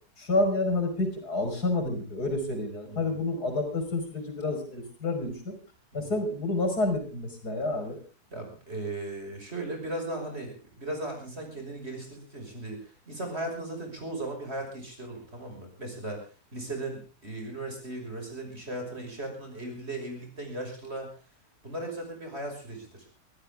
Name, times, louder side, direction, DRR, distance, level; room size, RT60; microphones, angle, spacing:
voice 1, 0.2-5.5 5.9-8.0, left 2 dB, 75° left, 7 dB, 5.7 m, -29 dB
voice 2, 2.8-3.2 5.9-6.2 8.3-16.2 16.5-21.1 21.6-23.1, right 2 dB, 40° right, 3 dB, 6.2 m, -37 dB
24.5 x 15.0 x 3.6 m, 0.35 s
omnidirectional pair, 1.7 m